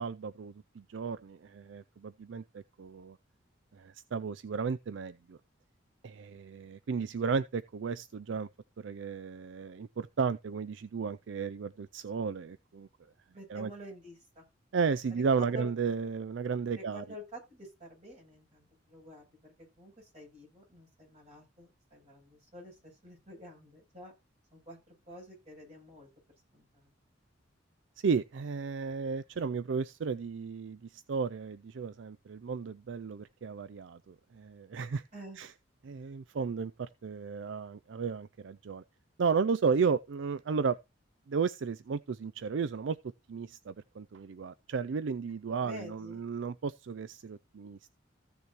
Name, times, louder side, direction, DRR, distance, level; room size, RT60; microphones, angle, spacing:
voice 1, 0.0-3.2 3.7-5.4 6.0-8.5 8.8-12.9 13.5-13.7 14.7-17.0 28.0-35.0 35.4-35.5 35.8-38.8 39.2-40.8 41.3-43.0 43.3-47.8, right 5 dB, 70° right, 0.4 m, -34 dB
voice 2, 13.3-14.4 15.1-15.7 16.7-24.1 24.5-26.1 26.5-26.9 35.1-35.4 45.5-46.2, equal, 35° right, 7.8 m, -49 dB
15.0 x 6.7 x 3.0 m
head